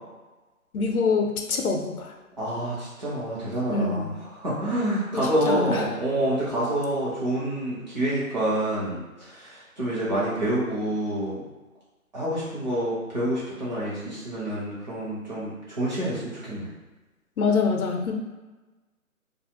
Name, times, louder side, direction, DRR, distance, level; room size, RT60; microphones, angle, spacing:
voice 1, 0.7-2.1 3.7-4.1 5.1-5.9 17.4-18.1, left 4 dB, 80° left, 3 dB, 0.6 m, -25 dB
voice 2, 2.4-11.4 12.1-16.7, right 1 dB, 30° right, -9 dB, 0.8 m, -27 dB
2.4 x 2.1 x 2.8 m, 1.2 s
figure-of-eight pair, 155°, 43 cm